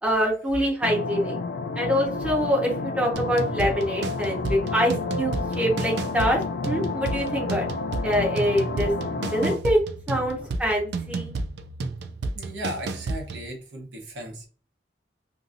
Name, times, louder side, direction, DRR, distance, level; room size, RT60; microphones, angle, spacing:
voice 1, 0.0-1.4 1.8-7.6 8.0-9.0 9.3-9.8 10.1-11.3, equal, 5° right, -3 dB, 0.9 m, -25 dB
sound 1, 0.8-9.6, left 3 dB, 55° left, 0.3 m, -30 dB
sound 2, 3.1-13.5, right 3 dB, 65° right, 0.3 m, -32 dB
voice 2, 10.1-10.6 12.3-14.5, right 1 dB, 85° right, 1 dB, 0.9 m, -36 dB
2.7 x 2.5 x 2.5 m, 0.37 s
head